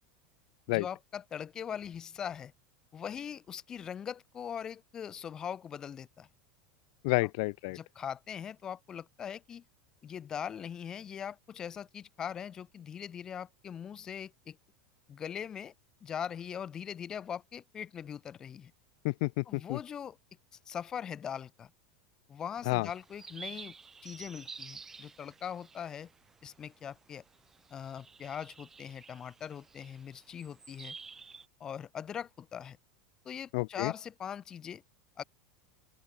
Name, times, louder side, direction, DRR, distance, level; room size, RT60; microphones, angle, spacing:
voice 1, 0.7-2.5 2.9-6.3 7.7-9.6 10.0-14.6 15.1-15.7 16.0-18.7 19.5-20.2 20.7-21.7 22.3-23.7 24.0-26.1 26.4-27.2 27.7-31.0 31.6-32.8 33.3-34.8 35.2-35.3, left 8 dB, 20° left, 1.9 m, -41 dB
voice 2, 7.0-7.8 19.0-19.8 22.7-22.9 33.5-33.9, left 27 dB, 50° left, 0.7 m, -30 dB
sound 1, 22.6-31.5, right 4 dB, 10° right, 7.6 m, -51 dB
open air
supercardioid pair, 175°, 3 cm